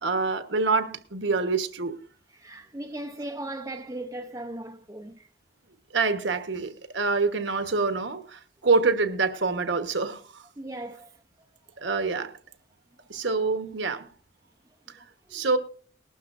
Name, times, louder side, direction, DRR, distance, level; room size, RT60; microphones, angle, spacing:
voice 1, 0.0-2.0 5.9-10.2 11.8-12.3 13.1-14.1 15.3-15.6, right 4 dB, 70° right, 1.2 m, -26 dB
voice 2, 2.3-5.3 10.6-11.1 15.3-15.5, right 1 dB, 15° right, 0.7 m, -37 dB
19.5 x 12.0 x 2.6 m
head